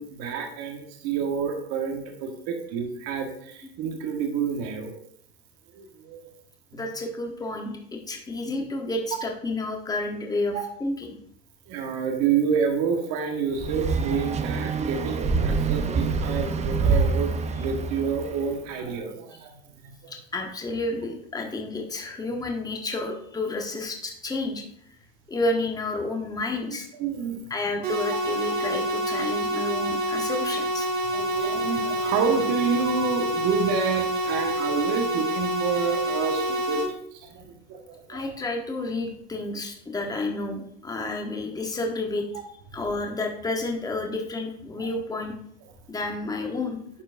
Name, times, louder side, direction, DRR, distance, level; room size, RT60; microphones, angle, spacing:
voice 1, 0.0-4.9 5.7-6.2 6.7-6.8 10.5-10.6 11.7-17.3 17.5-19.9 26.7-27.5 31.1-36.8 37.1-38.2 44.8-44.9, right 6 dB, 60° right, 3 dB, 1.6 m, -28 dB
voice 2, 6.7-11.1 20.1-24.6 25.3-26.9 27.5-30.9 38.1-42.3 42.7-45.3 45.9-46.8, left 2 dB, 10° left, 2 dB, 1.2 m, -30 dB
sound 1, 13.6-18.5, right 4 dB, 20° right, 0.6 m, -26 dB
sound 2, 27.8-36.8, equal, 90° right, 2.3 m, -27 dB
11.5 x 4.4 x 2.6 m, 0.67 s
hypercardioid pair, 105°, 30 cm